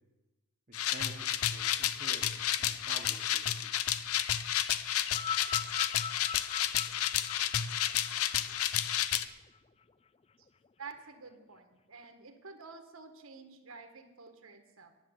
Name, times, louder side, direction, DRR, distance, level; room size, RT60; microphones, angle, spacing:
sound 1, 0.7-9.2, left 11 dB, 80° left, 0.6 m, -31 dB
voice 1, 0.7-3.7, right 3 dB, 35° right, 1 dB, 1.1 m, -50 dB
sound 2, 5.0-9.6 10.5-10.6, left 7 dB, 25° left, 0.3 m, -41 dB
voice 2, 10.8-14.9, right 4 dB, 70° right, 6 dB, 1.6 m, -50 dB
10.5 x 7.6 x 9.7 m, 1.0 s
head